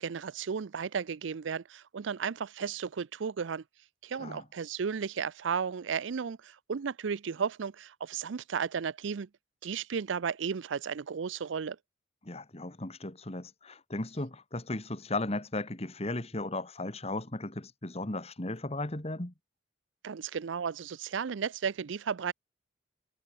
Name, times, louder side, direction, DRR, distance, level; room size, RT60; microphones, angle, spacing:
voice 1, 0.0-3.6 4.0-9.3 9.6-11.8 20.0-22.3, right 6 dB, 75° right, 0.5 m, -34 dB
voice 2, 12.2-19.3, left 2 dB, 35° left, 1.8 m, -36 dB
head